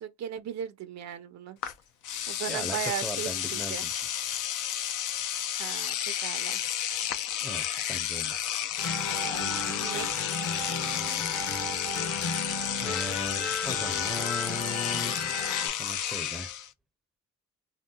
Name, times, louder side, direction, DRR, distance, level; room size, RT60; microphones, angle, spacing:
voice 1, 0.0-1.6 2.3-3.9 5.6-6.0 6.2-6.6 9.3-10.2, right 9 dB, 65° right, 0.6 m, -37 dB
Engine / Domestic sounds home sounds, 1.6-1.7 2.0-16.7, left 10 dB, 80° left, 0.6 m, -32 dB
voice 2, 2.5-4.3 7.4-8.4 12.8-15.2 15.7-16.5, left 1 dB, ahead, 0.5 m, -39 dB
sound 1, 8.8-15.7, left 4 dB, 50° left, 1.0 m, -34 dB
3.2 x 2.8 x 2.2 m
cardioid pair, 90°, 30 cm